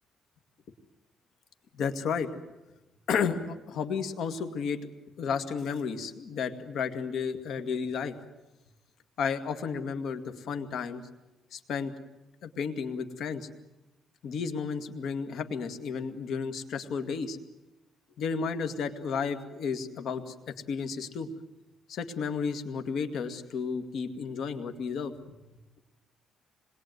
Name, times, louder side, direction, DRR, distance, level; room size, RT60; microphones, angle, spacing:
voice 1, 1.8-2.3 3.1-4.9 5.2-8.2 9.2-11.0 11.5-11.9 12.4-13.5 14.2-17.4 18.2-20.3 20.7-21.3 21.9-25.4, left 6 dB, 70° left, 8 dB, 2.2 m, -32 dB
26.5 x 21.5 x 9.5 m, 1.0 s
cardioid pair, 120°, 0 cm